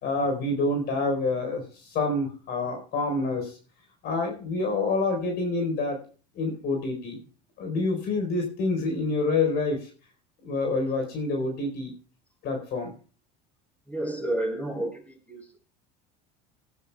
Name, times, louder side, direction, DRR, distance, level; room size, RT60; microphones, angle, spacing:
voice 1, 0.0-3.5 4.0-6.0 6.3-7.2 7.6-9.8 10.4-11.9 12.4-12.9, left 3 dB, 55° left, 3 dB, 4.4 m, -27 dB
voice 2, 13.9-15.6, right 1 dB, 5° left, 2 dB, 6.5 m, -31 dB
18.5 x 13.5 x 2.4 m, 0.38 s
hypercardioid pair, 85°, 21 cm